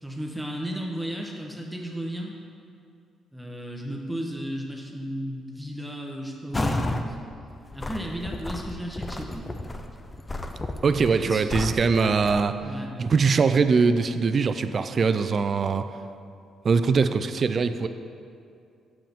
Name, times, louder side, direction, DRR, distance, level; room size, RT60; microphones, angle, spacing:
voice 1, 0.0-2.3 3.3-7.2 7.7-9.5 11.2-11.4 12.6-12.9, equal, 5° right, 0 dB, 0.9 m, -34 dB
sound 1, 6.5-7.1 7.5-12.4, left 1 dB, 20° left, 0.5 m, -32 dB
voice 2, 10.8-12.6 13.0-15.8 16.6-17.9, right 5 dB, 45° right, 10 dB, 0.4 m, -22 dB
7.6 x 7.2 x 3.6 m, 2.5 s
cardioid pair, 90°, 0 cm